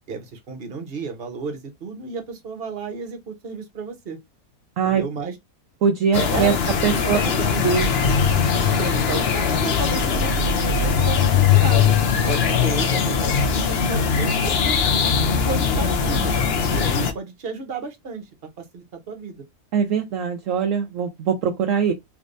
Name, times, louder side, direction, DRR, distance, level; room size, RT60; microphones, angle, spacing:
voice 1, 0.1-4.2 4.8-5.4 6.1-6.6 6.9-7.6 8.3-12.0 12.3-14.9 15.5-16.4 16.7-18.2 18.6-19.4, right 4 dB, 45° right, 1.0 m, -32 dB
voice 2, 5.8-6.5 6.8-7.2 7.6-7.9 19.7-21.9, right 6 dB, 70° right, 0.8 m, -21 dB
sound 1, 6.1-17.1, left 6 dB, 60° left, 0.6 m, -20 dB
3.3 x 3.3 x 2.6 m
omnidirectional pair, 1.8 m